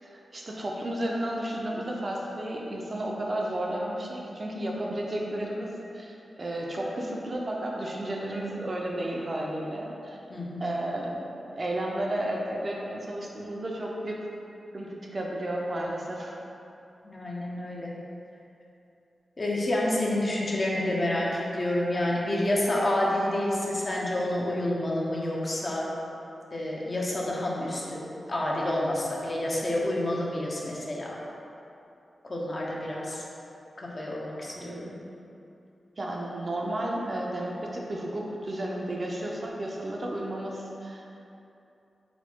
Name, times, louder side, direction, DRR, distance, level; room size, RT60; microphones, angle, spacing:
voice 1, 0.0-10.2 10.6-11.3 11.5-14.2 14.7-16.4 34.6-35.0 36.0-41.1, right 1 dB, 45° right, -2 dB, 0.6 m, -33 dB
voice 2, 10.3-10.7 17.0-17.9 19.4-25.9 26.5-31.2 32.2-33.2 33.8-34.9, left 1 dB, 45° left, -4 dB, 0.7 m, -29 dB
4.2 x 2.2 x 4.4 m, 2.8 s
cardioid pair, 60°, 0 cm